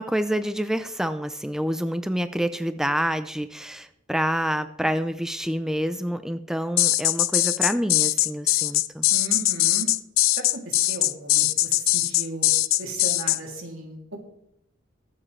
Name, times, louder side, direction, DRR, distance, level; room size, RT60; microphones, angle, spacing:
voice 1, 0.0-9.1, equal, 5° right, 10 dB, 0.4 m, -27 dB
sound 1, 6.8-13.4, left 17 dB, 75° left, 0.5 m, -21 dB
voice 2, 9.1-9.9 10.3-12.5 12.8-14.2, right 2 dB, 80° right, 1 dB, 2.8 m, -36 dB
22.0 x 7.5 x 3.2 m, 0.77 s
head